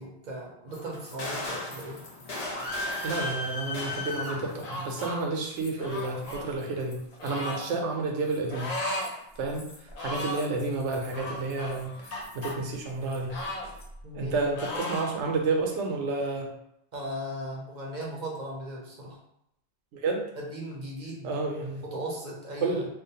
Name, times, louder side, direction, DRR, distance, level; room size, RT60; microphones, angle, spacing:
voice 1, 0.0-2.0 10.1-10.3 14.0-14.7 16.9-19.2 20.4-21.4 21.8-22.8, right 1 dB, 55° right, -2 dB, 0.5 m, -38 dB
sound 1, 0.7-5.2 5.6-7.8 8.3-12.8 13.0-13.8, left 1 dB, 70° left, 0.9 m, -38 dB
voice 2, 3.0-7.0 7.2-8.7 9.4-9.7 10.0-13.3 14.1-16.5 19.9-20.2 21.2-21.8 22.6-22.9, right 3 dB, 90° right, 1 dB, 0.9 m, -30 dB
sound 2, 4.6-5.2 5.8-6.4 7.2-7.6 8.5-9.1 9.4-9.5 9.9-10.5 11.1-12.5 13.3-14.3 14.5-15.1, left 1 dB, 50° left, 0.5 m, -35 dB
2.4 x 2.1 x 2.7 m, 0.79 s
omnidirectional pair, 1.2 m